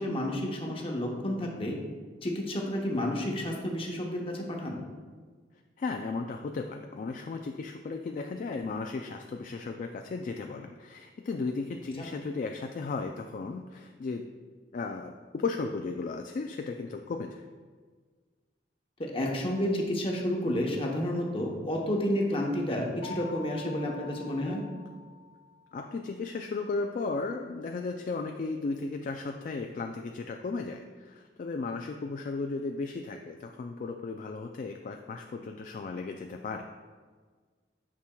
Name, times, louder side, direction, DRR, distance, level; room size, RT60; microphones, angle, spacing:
voice 1, 0.0-1.8 2.2-4.8 12.0-12.1 19.0-24.6, left 1 dB, 30° left, 0 dB, 0.9 m, -30 dB
voice 2, 5.8-14.3 14.7-17.4 25.7-36.7, left 3 dB, 45° left, 4 dB, 0.3 m, -35 dB
sound 1, 23.0-25.8, left 6 dB, 70° left, 0.9 m, -46 dB
8.5 x 5.9 x 2.3 m, 1.5 s
head